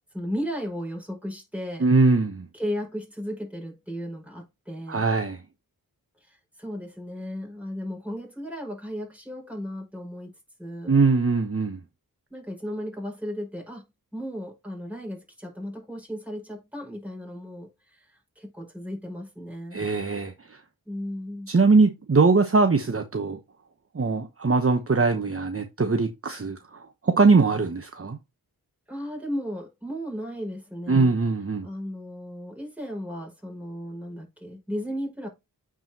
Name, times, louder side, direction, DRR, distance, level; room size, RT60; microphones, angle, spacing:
voice 1, 0.1-1.9 2.5-5.1 6.2-10.3 10.6-11.0 12.3-13.8 14.1-19.8 20.9-21.5 28.9-31.1 31.6-35.3, equal, 5° right, 5.4 m, -35 dB
voice 2, 1.8-2.5 4.9-5.4 10.9-11.8 19.7-20.6 21.5-23.4 23.9-28.2 30.9-31.7, right 4 dB, 35° right, 1.0 m, -21 dB
9.0 x 4.9 x 2.9 m
cardioid pair, 45°, 38 cm